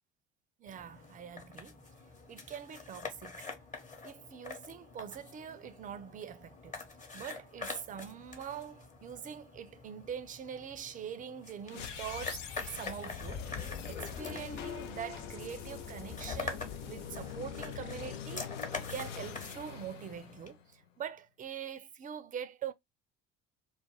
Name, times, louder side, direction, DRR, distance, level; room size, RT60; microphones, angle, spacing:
voice 1, 0.6-1.8 2.3-3.6 4.0-6.8 7.1-22.7, right 8 dB, 25° right, 0.4 m, -44 dB
sound 1, 0.7-20.5, left 4 dB, 20° left, 0.8 m, -46 dB
sound 2, 11.7-20.9, left 8 dB, 85° left, 0.5 m, -44 dB
sound 3, 11.8-18.2, left 7 dB, 65° left, 1.1 m, -46 dB
2.3 x 2.1 x 3.0 m
hypercardioid pair, 65°, 35 cm